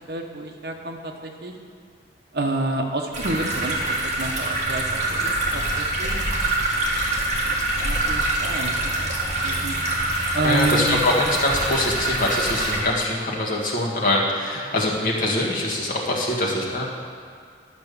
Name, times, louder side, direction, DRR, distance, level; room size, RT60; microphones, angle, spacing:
voice 1, 0.1-1.5 2.3-6.2 7.0-7.2 7.5-9.1 9.4-9.8 10.3-11.0, right 2 dB, 60° right, 2 dB, 1.0 m, -29 dB
sound 1, 3.1-12.8, right 2 dB, 40° right, 1.7 m, -25 dB
voice 2, 10.4-16.8, left 1 dB, 50° left, -4 dB, 1.7 m, -23 dB
11.0 x 5.8 x 6.9 m, 2.1 s
head